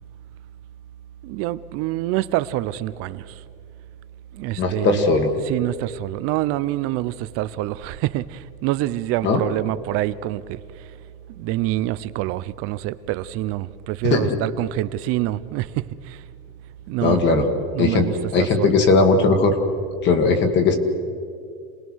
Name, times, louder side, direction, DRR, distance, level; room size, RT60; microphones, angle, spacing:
voice 1, 1.2-3.4 4.3-5.2 5.4-10.6 11.3-16.2 16.9-17.2 17.7-18.8, right 16 dB, 45° right, 0.7 m, -26 dB
voice 2, 4.6-5.3 9.2-9.4 14.0-14.3 17.0-17.5 17.8-19.6 20.0-20.8, left 4 dB, 35° left, 1.9 m, -18 dB
27.5 x 19.5 x 6.3 m
cardioid pair, 170°, 31 cm